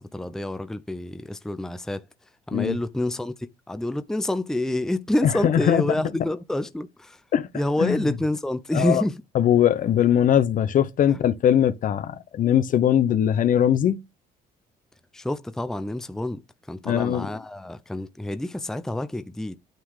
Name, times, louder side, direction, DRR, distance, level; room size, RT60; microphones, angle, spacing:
voice 1, 0.0-2.1 2.5-7.2 7.5-9.2 11.1-11.2 15.1-16.4 16.7-19.6, left 1 dB, 5° left, 0.6 m, -28 dB
voice 2, 5.4-5.8 7.3-7.5 7.8-8.0 8.7-9.0 9.4-14.0 16.9-17.3, left 10 dB, 50° left, 0.8 m, -20 dB
9.2 x 3.8 x 4.9 m
cardioid pair, 110°, 17 cm